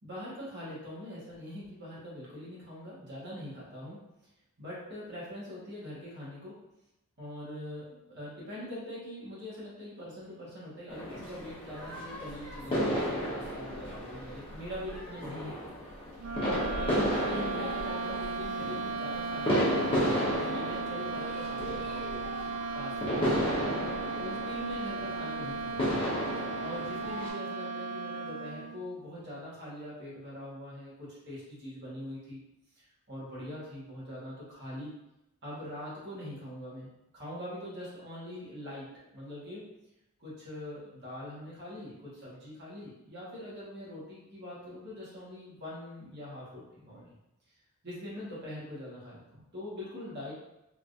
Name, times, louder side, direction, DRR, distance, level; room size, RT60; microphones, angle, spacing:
voice 1, 0.0-4.0 4.6-6.6 7.2-16.1 16.4-19.7 20.2-22.3 22.7-23.6 24.2-25.9 26.6-32.4 32.8-34.9 35.4-39.7 40.2-47.1 47.8-50.3, left 1 dB, 50° right, -7 dB, 1.4 m, -43 dB
sound 1, 10.9-27.3, equal, 25° left, 0.8 m, -33 dB
sound 2, 16.2-28.9, right 4 dB, 90° right, 0.4 m, -36 dB
3.4 x 2.9 x 2.5 m, 0.91 s
head